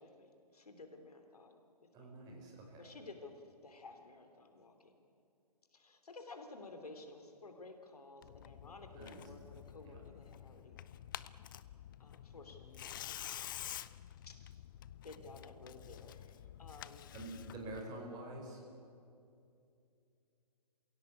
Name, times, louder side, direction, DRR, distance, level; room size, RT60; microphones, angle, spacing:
voice 1, 0.0-1.6 2.0-2.1 2.8-5.0 5.7-10.7 12.0-13.0 14.2-14.4 15.0-17.1, left 3 dB, 70° left, 6 dB, 3.0 m, -54 dB
voice 2, 1.9-2.8 9.0-9.2 9.8-10.0 17.1-18.6, right 2 dB, 20° right, 1 dB, 4.9 m, -47 dB
Tearing, 8.2-17.8, left 11 dB, 30° left, 0.5 m, -49 dB
27.5 x 16.5 x 8.5 m, 2.5 s
figure-of-eight pair, 130°, 20 cm